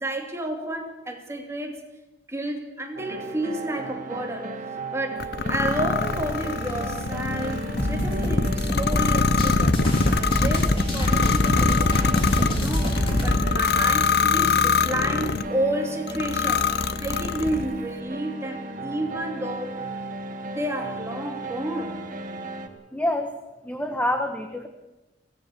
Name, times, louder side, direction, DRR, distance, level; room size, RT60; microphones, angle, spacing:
voice 1, 0.0-1.8 2.3-4.6 4.9-19.9 20.5-22.0, right 1 dB, 15° right, 2 dB, 2.7 m, -31 dB
sound 1, 2.9-22.7, right 1 dB, 50° right, 1.9 m, -35 dB
sound 2, 5.2-15.5 16.1-17.7, left 5 dB, 60° left, 0.8 m, -24 dB
sound 3, 7.8-13.4, equal, 30° left, 4.2 m, -25 dB
voice 2, 22.9-23.3 23.6-24.7, left 1 dB, 10° left, 6 dB, 1.3 m, -26 dB
23.5 x 17.5 x 7.0 m, 1.0 s
head